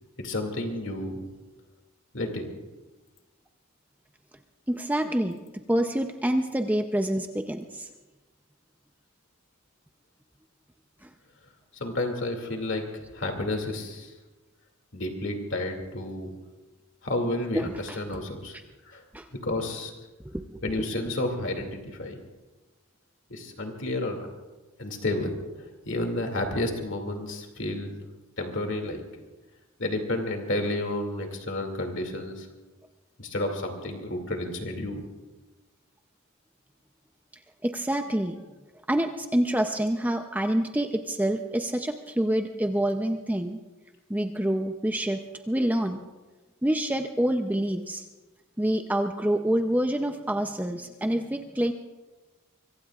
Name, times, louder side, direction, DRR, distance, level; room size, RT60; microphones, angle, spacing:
voice 1, 0.2-1.2 2.1-2.5 11.8-12.8 13.1-14.1 14.9-16.3 17.0-18.6 18.8-19.0 19.4-19.9 20.6-22.2 23.3-24.3 24.8-25.3 25.6-27.9 28.4-29.0 29.8-32.5 33.2-35.0, left 1 dB, 55° left, 3 dB, 2.5 m, -31 dB
voice 2, 4.7-7.9 11.0-11.1 17.5-18.0 19.1-19.3 20.2-20.4 20.8-20.9 37.6-38.4 38.9-43.6 44.1-46.0 46.6-48.1 48.6-51.7, right 1 dB, 5° right, 5 dB, 0.6 m, -27 dB
25.0 x 23.5 x 2.4 m, 1.2 s
head